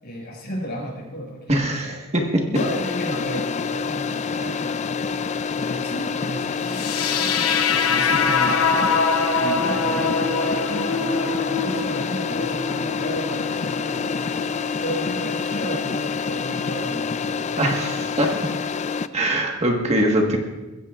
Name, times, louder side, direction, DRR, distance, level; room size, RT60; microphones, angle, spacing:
voice 1, 0.0-2.0 2.3-5.3 5.5-7.3 7.7-9.0 9.4-14.4 14.8-18.1 19.8-20.4, equal, 50° left, -3 dB, 5.7 m, -33 dB
voice 2, 1.5-2.4 17.6-18.5 19.1-20.4, right 1 dB, 30° right, 1 dB, 1.5 m, -22 dB
sound 1, 2.5-19.1, left 5 dB, 35° left, 0.4 m, -27 dB
sound 2, 6.6-14.7, left 4 dB, 90° left, 1.0 m, -24 dB
23.0 x 15.5 x 2.5 m, 1.1 s
head